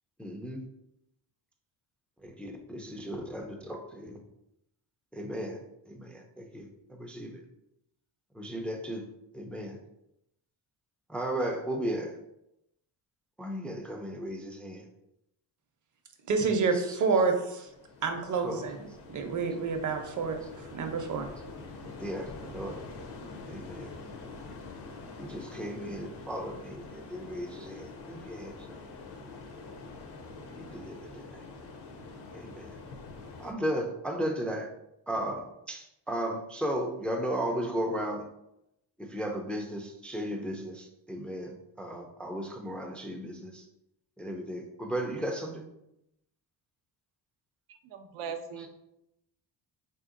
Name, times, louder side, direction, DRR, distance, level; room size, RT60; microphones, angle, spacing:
voice 1, 0.2-0.6 2.2-4.2 5.1-5.6 5.9-6.7 7.0-7.4 8.4-9.1 9.3-9.8 11.1-12.1 13.4-14.8 16.7-17.2 18.3-18.7 22.0-22.8 23.5-23.9 25.2-28.5 30.6-31.4 32.3-32.7 33.4-34.7 35.1-38.3 39.0-43.6 44.2-45.6, equal, 5° left, 2 dB, 0.3 m, -35 dB
voice 2, 16.3-17.7 18.0-18.8 19.1-20.4 20.7-21.3, right 4 dB, 40° right, 5 dB, 0.6 m, -28 dB
sound 1, 17.7-33.5, left 3 dB, 55° left, 0.7 m, -45 dB
voice 3, 47.7-48.7, right 6 dB, 80° right, 6 dB, 0.6 m, -39 dB
3.3 x 2.8 x 2.5 m, 0.84 s
supercardioid pair, 65°, 48 cm